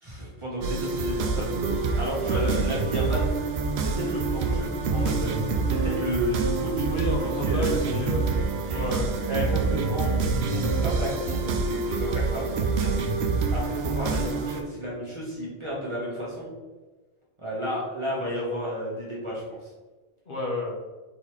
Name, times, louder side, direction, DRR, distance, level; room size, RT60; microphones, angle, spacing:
voice 1, 0.0-3.3 3.8-5.3 5.7-6.9 7.2-7.8 8.7-12.4 12.8-13.1 13.5-16.5 17.4-19.7, equal, 25° right, -6 dB, 1.1 m, -32 dB
sound 1, 0.6-14.6, right 4 dB, 70° right, 0.8 m, -26 dB
voice 2, 2.3-2.6 6.9-8.4 8.7-9.1 20.3-20.7, left 1 dB, 50° left, -4 dB, 1.1 m, -31 dB
3.9 x 3.6 x 3.1 m, 1.3 s
omnidirectional pair, 1.2 m